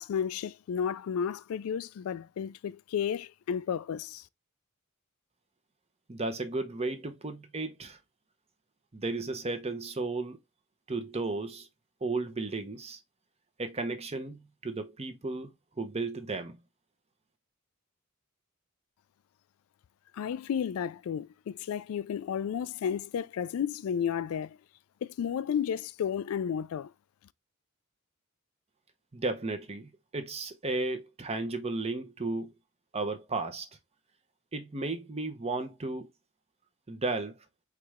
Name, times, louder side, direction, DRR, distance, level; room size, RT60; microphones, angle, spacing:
voice 1, 0.0-4.2 20.1-24.6 25.0-26.9, left 8 dB, 70° left, 0.3 m, -32 dB
voice 2, 6.1-8.0 8.9-10.4 10.9-11.7 12.0-13.0 13.6-15.5 15.8-16.6 29.1-32.5 32.9-33.7 34.5-36.1 36.9-37.4, right 3 dB, 30° right, 0.8 m, -34 dB
4.7 x 3.2 x 3.5 m
head